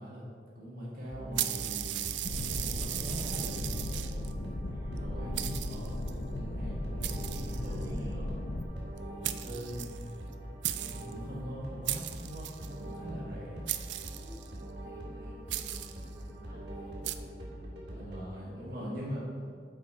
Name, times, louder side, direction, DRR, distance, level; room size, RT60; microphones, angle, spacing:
voice 1, 0.0-2.0 2.6-4.3 4.9-8.4 9.4-9.9 10.8-13.7 17.9-19.2, equal, 55° right, -6 dB, 1.8 m, -42 dB
sound 1, 1.1-18.2, right 1 dB, 70° right, 2.1 m, -43 dB
sound 2, 1.4-4.3 5.0-5.1 5.4-6.1 7.0-8.0 9.0-9.1 9.2-10.3 10.6-11.1 11.9-12.7 13.7-14.6 15.5-16.1 17.0-17.2, right 13 dB, 85° right, 0.4 m, -36 dB
sound 3, 2.2-8.6, left 1 dB, 45° left, 0.6 m, -37 dB
voice 2, 4.7-5.4 6.8-8.3 8.6-9.6 12.4-12.8 14.0-19.6, equal, 20° right, -8 dB, 2.2 m, -55 dB
8.5 x 5.2 x 5.0 m, 2.3 s
head